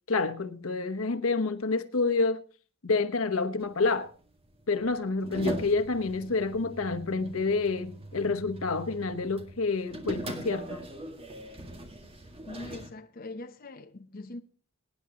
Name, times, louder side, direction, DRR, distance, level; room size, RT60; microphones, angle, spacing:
voice 1, 0.1-2.4 2.8-4.1 4.7-10.9, left 3 dB, 90° left, 1.0 m, -28 dB
sound 1, 3.6-12.9, right 1 dB, 25° right, 1.8 m, -41 dB
voice 2, 12.4-14.4, left 2 dB, 45° left, 0.8 m, -42 dB
22.5 x 9.9 x 2.9 m
head